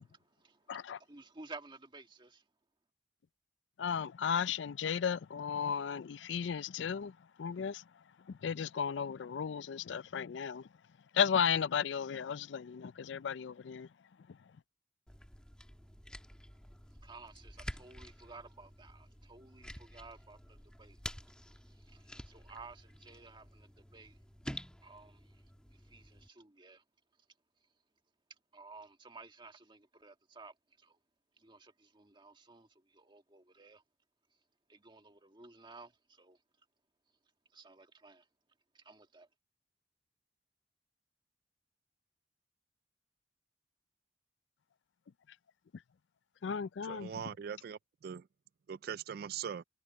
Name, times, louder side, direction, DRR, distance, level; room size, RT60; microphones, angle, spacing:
voice 1, 0.0-2.4 17.0-21.0 21.7-24.2 24.8-25.4 25.8-26.8 28.5-31.0 31.4-33.8 34.7-36.4 37.5-38.2 38.7-39.3, right 3 dB, 25° right, 1.8 m, -54 dB
voice 2, 0.7-1.0 3.8-7.8 8.3-10.7 11.1-13.9 14.3-14.4 46.4-47.2, left 7 dB, 85° left, 0.4 m, -34 dB
sound 1, 15.1-26.3, equal, 5° left, 1.4 m, -50 dB
voice 3, 46.9-48.3 48.7-49.6, right 7 dB, 55° right, 0.3 m, -41 dB
head